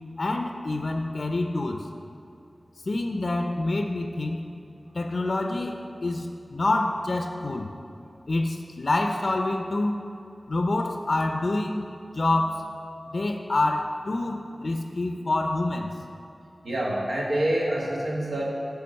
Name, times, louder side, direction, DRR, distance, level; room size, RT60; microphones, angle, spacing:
voice 1, 0.2-1.9 2.9-4.4 4.9-7.7 8.3-10.0 10.5-12.6 13.1-15.9, left 2 dB, 65° left, 4 dB, 0.4 m, -27 dB
voice 2, 16.6-18.4, right 1 dB, 85° right, -4 dB, 1.3 m, -26 dB
10.5 x 3.5 x 6.3 m, 2.6 s
wide cardioid pair, 60°, 0 cm